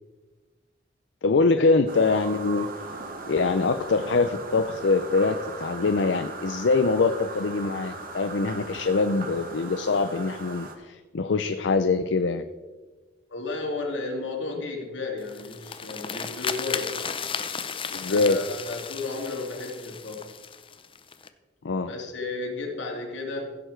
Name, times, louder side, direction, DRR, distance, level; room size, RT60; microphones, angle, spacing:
voice 1, 1.2-2.7 3.3-12.4 17.9-18.4 21.6-21.9, left 3 dB, 70° left, 9 dB, 0.5 m, -24 dB
Distant Foxhunt, 1.9-10.7, right 3 dB, 50° right, 1.5 m, -39 dB
voice 2, 13.3-16.9 18.0-20.2 21.8-23.6, left 3 dB, 90° left, 1 dB, 2.4 m, -33 dB
sound 1, 15.2-21.3, left 6 dB, 30° left, 0.6 m, -35 dB
15.5 x 6.8 x 4.5 m, 1.3 s
head